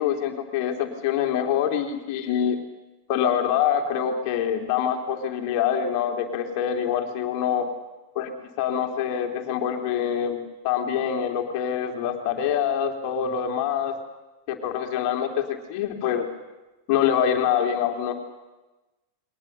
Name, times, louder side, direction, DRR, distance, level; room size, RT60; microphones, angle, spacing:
voice 1, 0.0-2.6 3.1-7.7 8.1-8.3 8.6-13.9 14.5-16.3 16.9-18.2, left 9 dB, 45° left, 4 dB, 3.2 m, -25 dB
29.0 x 23.0 x 6.8 m, 1.1 s
figure-of-eight pair, 90°, 0 cm